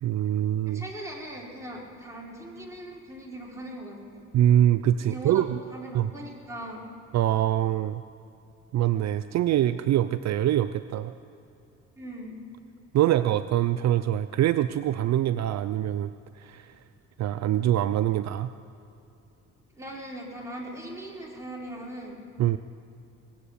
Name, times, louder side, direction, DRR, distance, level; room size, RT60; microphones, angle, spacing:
voice 1, 0.0-0.8 4.3-5.6 5.9-6.1 7.1-8.0 8.7-11.1 12.9-16.7 17.2-18.5 22.4-22.6, right 12 dB, 65° right, 12 dB, 0.5 m, -24 dB
voice 2, 0.6-4.2 5.0-5.4 5.7-6.8 12.0-12.4 19.7-22.2, right 1 dB, 10° right, -3 dB, 4.2 m, -40 dB
19.5 x 7.9 x 8.5 m, 2.7 s
cardioid pair, 90°, 30 cm